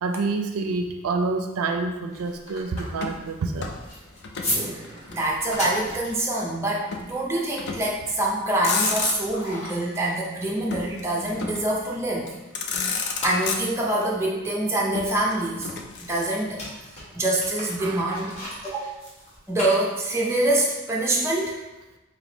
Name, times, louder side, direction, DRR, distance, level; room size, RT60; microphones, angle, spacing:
voice 1, 0.0-3.7 17.8-18.1, right 3 dB, 85° right, 5 dB, 0.4 m, -27 dB
sound 1, 1.9-12.4 12.7-20.4, left 1 dB, 30° left, 1.0 m, -37 dB
Motor vehicle (road), 2.9-4.6 4.8-5.9 6.9-7.1 7.6-8.0 8.4-9.5 10.7-11.8 12.3-12.4 12.5-14.1 14.9-16.6, left 5 dB, 50° left, 0.4 m, -31 dB
voice 2, 4.5-12.3 13.2-15.7 16.1-16.6 17.1-18.3 18.6-18.8 19.5-21.6, right 1 dB, 10° right, -3 dB, 0.5 m, -25 dB
3.5 x 2.8 x 3.9 m, 1.1 s
head